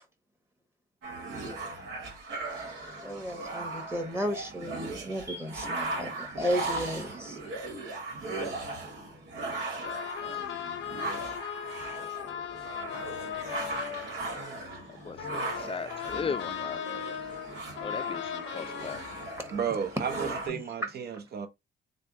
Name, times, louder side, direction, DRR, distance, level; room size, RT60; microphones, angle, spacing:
sound 1, 1.0-20.5, right 2 dB, 75° right, 1.5 m, -38 dB
voice 1, 3.0-7.4 18.6-18.7 20.5-20.6, equal, 10° right, 1.2 m, -34 dB
sound 2, 9.8-20.3, left 8 dB, 70° left, 0.6 m, -38 dB
voice 2, 14.9-17.3 17.8-19.0, left 5 dB, 30° left, 0.4 m, -37 dB
voice 3, 19.5-21.5, right 7 dB, 55° right, 0.8 m, -33 dB
3.3 x 2.3 x 3.9 m
cardioid pair, 90°, 20 cm